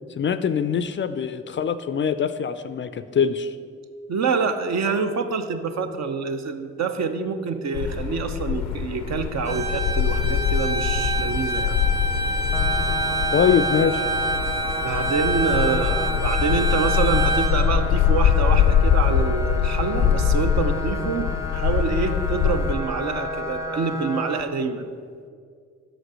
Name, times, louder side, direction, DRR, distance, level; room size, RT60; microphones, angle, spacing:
voice 1, 0.2-3.5 13.3-14.0, left 7 dB, 40° left, 12 dB, 0.4 m, -23 dB
voice 2, 4.1-11.8 14.8-24.9, right 5 dB, 55° right, 7 dB, 0.7 m, -26 dB
sound 1, 7.7-22.7, left 8 dB, 85° left, 0.5 m, -23 dB
Bowed string instrument, 9.4-17.6, right 3 dB, 85° right, 1.5 m, -27 dB
sound 2, 12.5-24.4, left 2 dB, 10° right, 0.7 m, -32 dB
6.1 x 5.0 x 6.2 m, 2.2 s
supercardioid pair, 45°, 32 cm